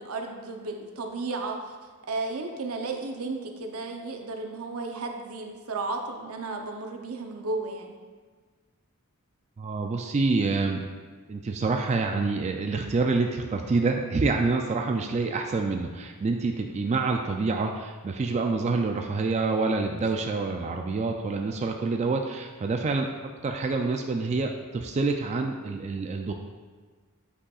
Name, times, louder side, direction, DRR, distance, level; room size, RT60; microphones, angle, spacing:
voice 1, 0.0-1.8 2.1-8.0 20.2-20.3, right 3 dB, 75° right, 3 dB, 0.7 m, -34 dB
voice 2, 9.6-10.8 11.3-23.1 23.4-26.3, right 3 dB, 30° right, 3 dB, 0.3 m, -27 dB
8.3 x 5.6 x 2.4 m, 1.5 s
head